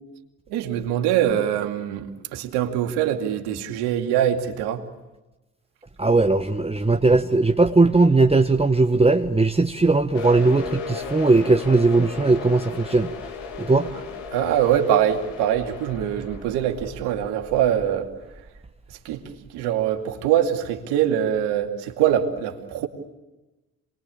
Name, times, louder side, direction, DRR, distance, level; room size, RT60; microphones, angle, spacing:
voice 1, 0.5-4.8 14.3-18.1 18.9-19.2 19.5-22.9, right 10 dB, 70° right, 4 dB, 2.5 m, -23 dB
voice 2, 6.0-13.1 13.6-13.9, right 3 dB, 15° right, 6 dB, 1.3 m, -18 dB
sound 1, 10.1-17.8, left 5 dB, 80° left, 2.6 m, -36 dB
28.0 x 21.5 x 8.7 m, 1.1 s
hypercardioid pair, 45°, 41 cm